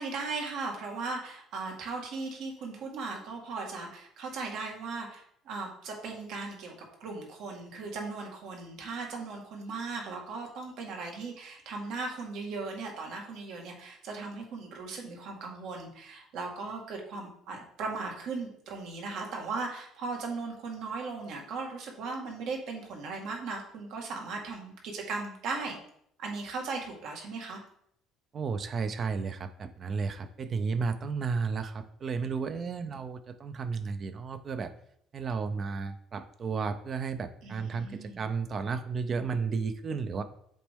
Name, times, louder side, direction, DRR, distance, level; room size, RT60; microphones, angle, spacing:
voice 1, 0.0-6.7 7.0-25.8 26.2-27.6 37.4-38.2, right 4 dB, 65° right, 1 dB, 1.7 m, -37 dB
voice 2, 28.3-34.7 35.1-40.2, right 5 dB, 35° right, 11 dB, 0.5 m, -33 dB
7.4 x 4.2 x 3.6 m, 0.69 s
cardioid pair, 135°, 0 cm